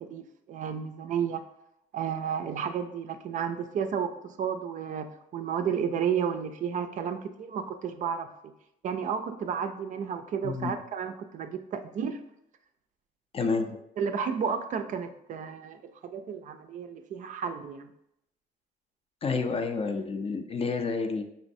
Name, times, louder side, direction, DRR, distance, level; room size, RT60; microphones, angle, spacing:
voice 1, 0.0-1.4 1.9-8.5 8.8-12.2 14.0-17.9, right 7 dB, 50° right, 8 dB, 0.4 m, -32 dB
voice 2, 10.4-10.7 13.3-13.8 19.2-21.2, left 4 dB, 35° left, 7 dB, 0.5 m, -29 dB
5.3 x 3.1 x 2.6 m, 0.80 s
cardioid pair, 110°, 17 cm